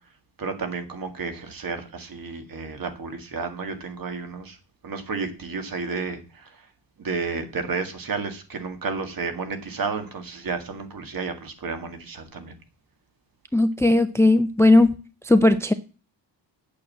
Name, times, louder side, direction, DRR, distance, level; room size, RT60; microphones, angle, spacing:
voice 1, 0.4-4.6 4.8-6.7 7.0-12.5, right 4 dB, 50° right, 1.9 m, -32 dB
voice 2, 13.5-14.9 15.2-15.7, left 2 dB, 5° left, 0.5 m, -17 dB
8.8 x 6.5 x 7.5 m
wide cardioid pair, 155°, 44 cm